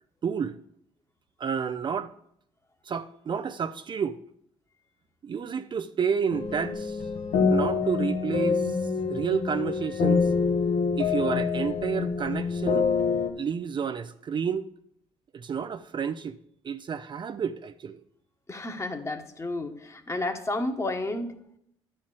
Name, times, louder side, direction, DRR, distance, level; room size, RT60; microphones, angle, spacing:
voice 1, 0.2-0.6 1.4-2.1 2.8-4.2 5.2-7.0 7.5-8.8 9.1-10.3 10.9-12.9 13.4-14.7 15.3-16.4 16.6-18.0, right 6 dB, 40° right, 0.5 m, -30 dB
sound 1, 6.3-13.3, left 5 dB, 75° left, 1.4 m, -26 dB
voice 2, 18.5-21.3, left 2 dB, 25° left, 1.3 m, -31 dB
10.5 x 4.4 x 7.6 m
supercardioid pair, 70°, 12 cm